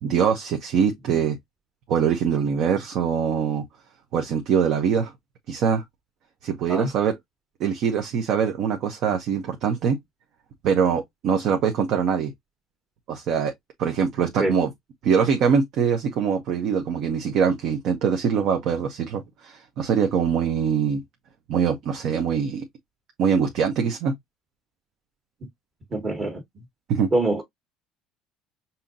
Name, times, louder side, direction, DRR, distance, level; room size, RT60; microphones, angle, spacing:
voice 1, 0.0-1.4 1.9-3.6 4.1-5.1 5.5-5.8 6.4-7.2 7.6-10.0 10.6-12.3 13.1-13.5 13.8-14.7 15.0-21.0 21.5-22.7 23.2-24.1 26.9-27.1, right 7 dB, 60° right, 0.9 m, -23 dB
voice 2, 25.9-26.4 27.1-27.4, right 2 dB, 30° right, 1.4 m, -24 dB
5.6 x 2.8 x 2.5 m
supercardioid pair, 105°, 0 cm